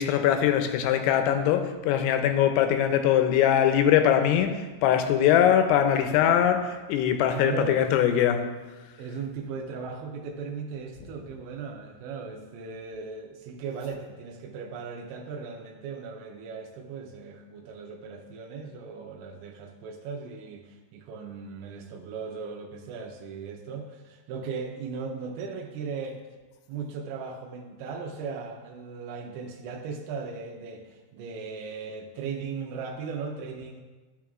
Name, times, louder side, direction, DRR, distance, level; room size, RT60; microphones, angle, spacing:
voice 1, 0.0-8.5, left 9 dB, 85° left, 7 dB, 2.9 m, -22 dB
voice 2, 7.3-7.8 9.0-26.2 26.7-33.8, right 5 dB, 90° right, 1 dB, 2.9 m, -37 dB
12.5 x 6.6 x 2.4 m, 1.3 s
omnidirectional pair, 5.2 m